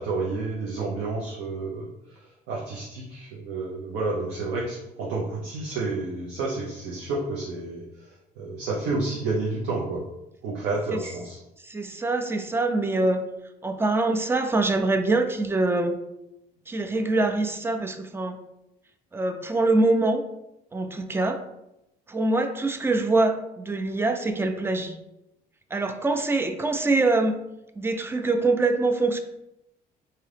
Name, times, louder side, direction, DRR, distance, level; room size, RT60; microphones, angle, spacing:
voice 1, 0.0-7.8 8.4-10.0 10.4-11.4, right 3 dB, 90° right, -3 dB, 0.7 m, -30 dB
voice 2, 11.6-13.2 13.6-16.0 16.7-18.4 19.1-20.2 20.7-21.4 22.1-24.9 25.7-27.4 27.8-29.2, right 2 dB, 15° right, 7 dB, 0.4 m, -24 dB
3.8 x 2.8 x 3.3 m, 0.88 s
cardioid pair, 110°, 17 cm